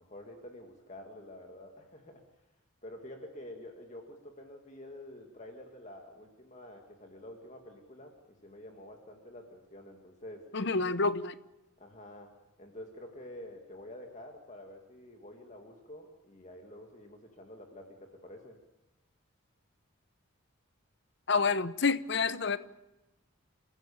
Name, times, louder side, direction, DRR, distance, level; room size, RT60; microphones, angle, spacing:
voice 1, 0.0-2.2 2.8-8.1 8.4-10.5 11.8-12.3 12.6-18.6, left 1 dB, 35° left, 2.2 m, -48 dB
voice 2, 10.5-11.4 21.3-22.6, left 4 dB, 55° left, 0.8 m, -28 dB
28.5 x 15.5 x 7.1 m
head